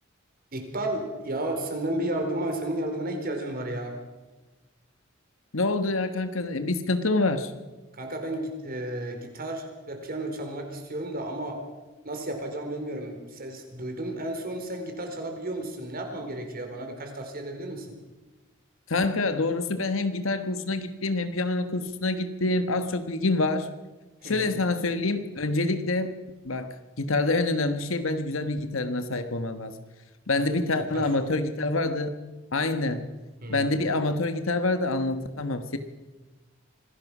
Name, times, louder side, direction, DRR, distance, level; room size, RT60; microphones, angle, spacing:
voice 1, 0.5-4.0 7.9-11.6 12.0-17.9 24.2-24.5 30.3-31.1 33.4-33.7, right 1 dB, 45° right, 4 dB, 4.3 m, -33 dB
voice 2, 5.5-7.5 18.9-23.7 24.2-26.2 26.4-29.7 30.3-32.2 32.5-33.0 33.5-35.8, left 2 dB, 80° left, 9 dB, 1.4 m, -26 dB
25.5 x 16.5 x 6.2 m, 1.2 s
head